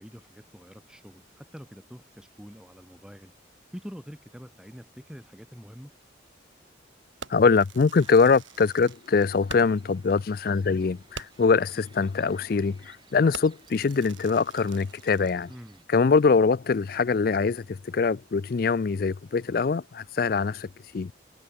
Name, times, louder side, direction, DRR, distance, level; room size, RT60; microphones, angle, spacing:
voice 1, 0.0-3.3 3.7-5.9 15.5-15.8, equal, 5° right, 3.1 m, -45 dB
Fireworks, 7.2-9.9 10.3-10.4 10.7-10.8 11.1-11.6 12.2-12.4 12.7-13.0 13.3-15.4, right 5 dB, 85° right, 4.8 m, -45 dB
voice 2, 7.3-15.5 15.9-20.7 20.9-21.1, left 4 dB, 50° left, 0.4 m, -23 dB
sound 1, 8.0-15.8, right 4 dB, 25° right, 4.2 m, -60 dB
head